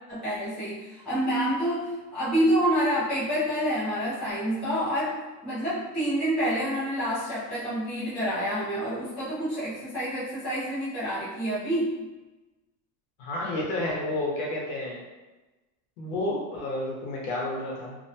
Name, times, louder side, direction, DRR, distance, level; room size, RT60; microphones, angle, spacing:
voice 1, 0.1-12.0, equal, ahead, -14 dB, 0.4 m, -28 dB
voice 2, 13.2-15.0 16.0-18.0, left 1 dB, 70° left, -3 dB, 0.9 m, -30 dB
2.7 x 2.1 x 2.6 m, 1.1 s
cardioid pair, 175°, 43 cm